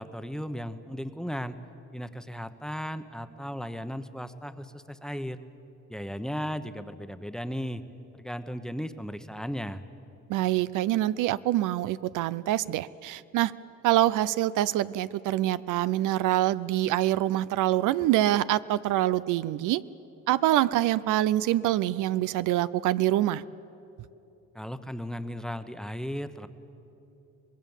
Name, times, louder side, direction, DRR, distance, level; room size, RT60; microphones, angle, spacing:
voice 1, 0.0-1.6 1.9-5.4 5.9-7.8 8.1-9.8 24.5-26.5, equal, ahead, 9 dB, 1.0 m, -36 dB
voice 2, 10.3-13.5 13.8-19.8 20.3-23.4, right 14 dB, 85° right, 16 dB, 0.5 m, -25 dB
24.5 x 20.0 x 7.3 m, 3.0 s
cardioid pair, 90°, 30 cm